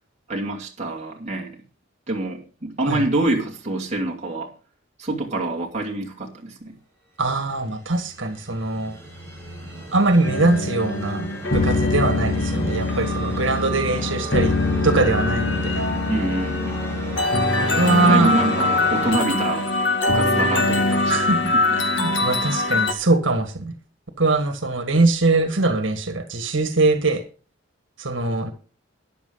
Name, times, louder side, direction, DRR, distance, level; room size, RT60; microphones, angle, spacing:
voice 1, 0.3-1.5 2.1-4.5 5.0-6.8 16.1-16.8 18.0-19.7 20.0-21.2 21.5-21.8, right 2 dB, 35° right, 2.7 m, -26 dB
voice 2, 7.2-9.0 9.9-11.3 11.5-14.5 14.8-15.8 17.7-18.4 21.1-23.7 24.2-27.2 28.0-28.5, right 2 dB, 85° right, 1.7 m, -22 dB
sound 1, 7.6-19.1, right 1 dB, 15° left, 4.9 m, -35 dB
sound 2, 10.2-22.9, left 2 dB, 70° left, 2.0 m, -23 dB
13.5 x 11.0 x 3.9 m
head